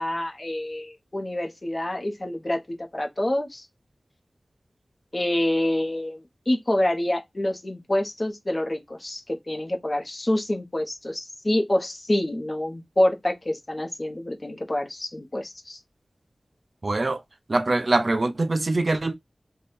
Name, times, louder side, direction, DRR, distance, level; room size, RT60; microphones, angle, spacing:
voice 1, 0.0-3.7 5.1-15.8, left 1 dB, 40° left, 1.0 m, -27 dB
voice 2, 16.8-17.2 17.5-19.2, right 2 dB, 60° right, 0.5 m, -23 dB
3.4 x 2.3 x 4.2 m
cardioid pair, 45°, 0 cm